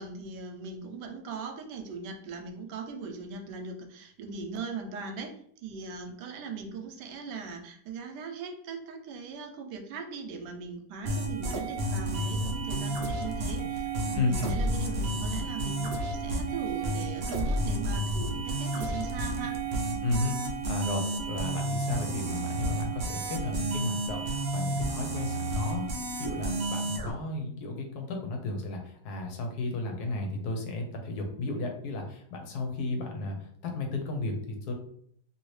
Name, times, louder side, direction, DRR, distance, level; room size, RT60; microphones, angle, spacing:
voice 1, 0.0-19.5, right 4 dB, 85° right, 4 dB, 1.2 m, -39 dB
sound 1, 11.1-27.1, right 1 dB, 65° right, 0.5 m, -31 dB
voice 2, 14.1-14.5 20.0-25.9 26.2-34.7, left 2 dB, 70° left, 2 dB, 1.2 m, -33 dB
2.8 x 2.8 x 3.1 m, 0.64 s
omnidirectional pair, 1.8 m